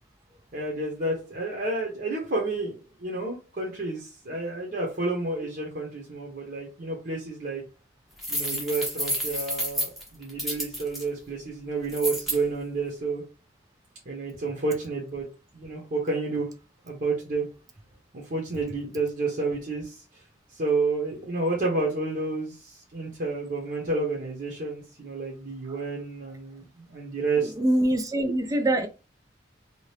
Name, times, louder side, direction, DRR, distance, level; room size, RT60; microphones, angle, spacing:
voice 1, 0.5-7.6 8.3-13.2 14.1-15.3 15.5-16.5 16.8-17.5 18.1-20.2 20.5-27.5, right 3 dB, 50° right, 0.8 m, -30 dB
sound 1, 8.2-11.0 11.9-12.4, equal, ahead, 0.8 m, -30 dB
voice 2, 27.4-28.9, right 1 dB, 20° right, 0.4 m, -24 dB
2.8 x 2.4 x 3.2 m
head